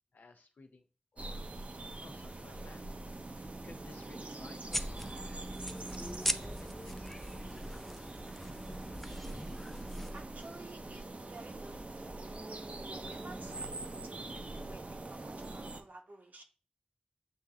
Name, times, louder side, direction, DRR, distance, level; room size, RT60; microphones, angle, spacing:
voice 1, 0.1-0.9 1.1-1.5 2.0-2.9 3.3-6.0 6.3-7.5, left 3 dB, 90° left, 6 dB, 0.6 m, -57 dB
sound 1, 1.2-15.8, right 2 dB, 50° right, 0.5 m, -44 dB
sound 2, 4.7-10.3, equal, 10° left, 0.3 m, -40 dB
voice 2, 10.1-11.0 11.3-12.1 13.1-14.8 15.1-16.4, right 2 dB, 70° right, 2 dB, 0.9 m, -53 dB
7.5 x 2.8 x 2.4 m, 0.35 s
cardioid pair, 45°, 3 cm